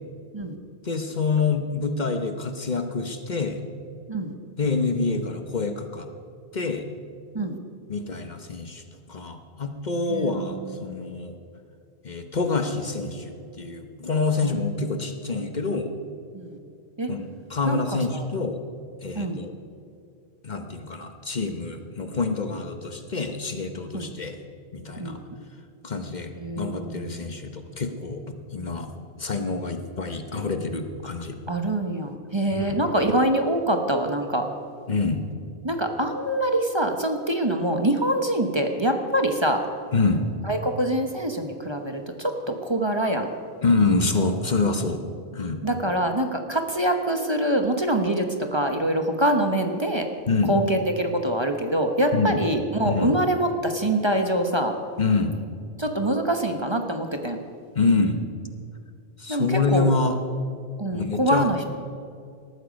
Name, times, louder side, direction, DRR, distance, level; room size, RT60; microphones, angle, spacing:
voice 1, 0.8-3.6 4.6-6.1 6.5-6.9 7.9-11.4 12.0-15.9 17.1-18.6 19.0-19.5 20.4-24.4 24.7-25.2 25.8-28.9 29.2-31.4 32.5-32.7 34.9-35.2 39.9-40.2 43.6-45.0 45.3-45.6 50.3-50.5 52.1-52.4 52.8-53.1 55.0-55.4 57.7-58.2 59.2-60.2 60.9-61.5, left 3 dB, 45° left, 6 dB, 1.1 m, -26 dB
voice 2, 10.1-11.2 14.4-14.6 16.3-16.6 17.0-17.1 17.6-17.8 18.1-18.2 19.1-19.4 23.9-24.1 25.0-25.4 26.4-27.2 31.5-34.4 35.6-39.6 40.4-43.3 45.6-50.1 50.5-54.7 55.8-57.4 59.3-59.9 60.8-61.6, right 1 dB, 25° right, 5 dB, 1.1 m, -25 dB
19.0 x 14.0 x 5.3 m, 2.4 s
omnidirectional pair, 1.1 m